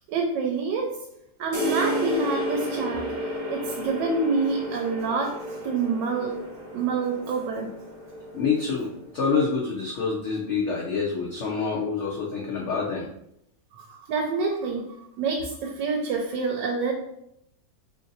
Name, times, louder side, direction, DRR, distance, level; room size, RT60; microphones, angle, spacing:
voice 1, 0.1-0.9 1.4-3.1 3.5-6.4 6.7-7.7 13.7-14.8 15.2-16.9, right 4 dB, 80° right, 2 dB, 1.2 m, -27 dB
sound 1, 1.5-9.1, equal, 30° right, 0.7 m, -32 dB
voice 2, 8.3-13.1, left 5 dB, 75° left, -3 dB, 0.6 m, -27 dB
3.0 x 2.5 x 3.9 m, 0.78 s
omnidirectional pair, 1.9 m